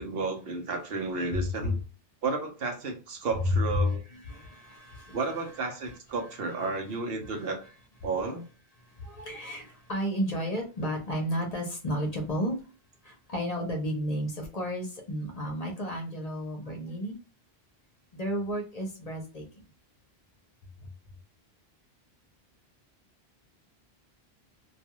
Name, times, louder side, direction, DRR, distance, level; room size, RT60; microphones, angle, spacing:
voice 1, 0.0-1.8 2.2-4.0 5.1-7.6 8.0-8.5, right 3 dB, 70° right, 4 dB, 0.9 m, -32 dB
voice 2, 1.3-1.7 3.5-5.4 7.2-7.5 8.1-8.2 8.8-12.6 13.0-17.2 18.1-19.4, left 1 dB, 45° left, 2 dB, 0.7 m, -32 dB
2.3 x 2.3 x 2.9 m, 0.35 s
omnidirectional pair, 1.1 m